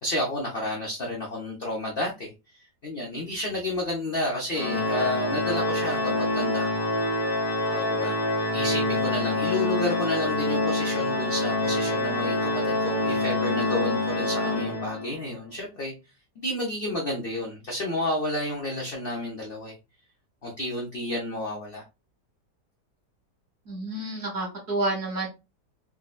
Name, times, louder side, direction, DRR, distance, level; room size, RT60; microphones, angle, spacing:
voice 1, 0.0-2.3 2.8-6.9 7.7-8.2 8.5-15.9 16.4-19.8 20.4-21.8, left 1 dB, 65° left, 0.5 m, -31 dB
Organ, 4.5-15.2, left 2 dB, 90° left, 1.4 m, -26 dB
voice 2, 23.7-25.3, right 2 dB, 45° right, 1.1 m, -29 dB
3.7 x 2.0 x 2.3 m
omnidirectional pair, 1.8 m